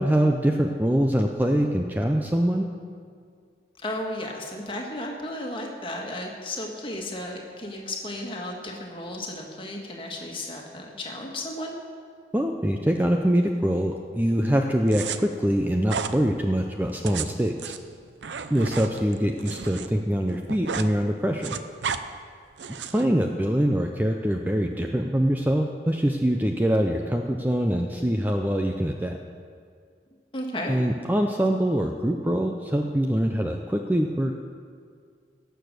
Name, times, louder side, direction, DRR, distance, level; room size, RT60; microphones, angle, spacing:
voice 1, 0.0-2.7 12.3-17.7 18.5-21.6 22.9-29.2 30.7-34.4, equal, 10° right, 3 dB, 0.5 m, -24 dB
voice 2, 3.8-11.8 30.3-30.7, left 1 dB, 30° left, 0 dB, 1.7 m, -34 dB
sound 1, 14.9-15.2 15.9-16.2 16.9-19.9 20.2-20.9 21.2-22.0 22.6-23.1, right 6 dB, 85° right, 0.6 m, -33 dB
17.5 x 6.9 x 6.6 m, 2.1 s
head